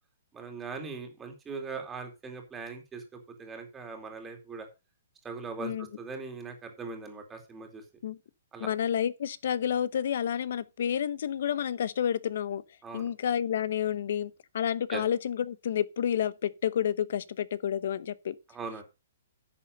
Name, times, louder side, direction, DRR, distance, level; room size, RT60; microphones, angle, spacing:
voice 1, 0.3-4.7 5.2-7.8 8.5-8.7 12.8-13.1 14.9-15.0 18.5-18.8, right 4 dB, 10° right, 2.6 m, -40 dB
voice 2, 8.6-12.6 12.9-18.4, left 9 dB, 60° left, 0.9 m, -30 dB
10.5 x 6.9 x 5.4 m
hypercardioid pair, 160°, 0 cm